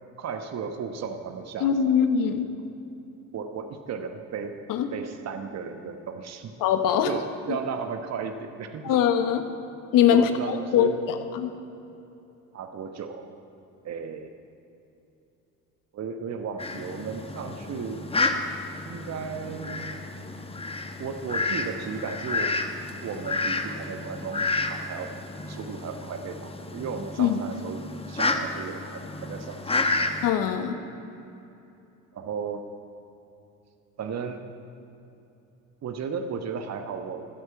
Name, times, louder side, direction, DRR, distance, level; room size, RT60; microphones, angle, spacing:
voice 1, 0.2-2.0 3.3-4.6 4.9-6.5 7.1-8.9 10.1-11.0 12.5-13.3 13.8-14.3 15.9-18.1 18.8-20.0 21.0-22.5 23.0-24.4 24.7-25.1 25.5-30.2 32.1-32.7 34.0-34.4 35.8-37.4, right 6 dB, 40° right, 7 dB, 1.2 m, -35 dB
voice 2, 1.6-2.5 4.7-4.9 6.6-7.1 8.8-9.4 9.9-11.5 27.2-27.4 30.2-30.8, left 8 dB, 50° left, 8 dB, 1.3 m, -22 dB
Fowl, 16.6-30.3, left 3 dB, 15° left, 1.0 m, -31 dB
16.5 x 13.0 x 4.7 m, 2.8 s
figure-of-eight pair, 60°, 42 cm